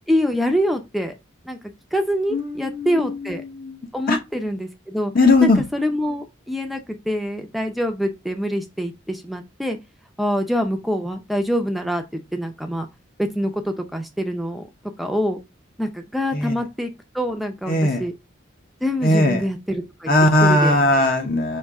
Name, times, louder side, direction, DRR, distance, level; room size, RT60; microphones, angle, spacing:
voice 1, 0.1-1.1 1.4-1.6 1.9-3.4 3.9-5.1 5.4-6.8 7.1-9.8 10.2-12.9 13.2-14.6 15.0-15.4 15.8-18.1 18.8-20.1 20.4-20.8, equal, ahead, 0.5 m, -25 dB
voice 2, 2.3-3.8 4.1-4.2 5.1-5.6 16.3-16.5 17.7-18.0 19.0-19.4 20.1-21.6, left 2 dB, 45° left, 0.8 m, -18 dB
5.4 x 2.8 x 3.5 m
head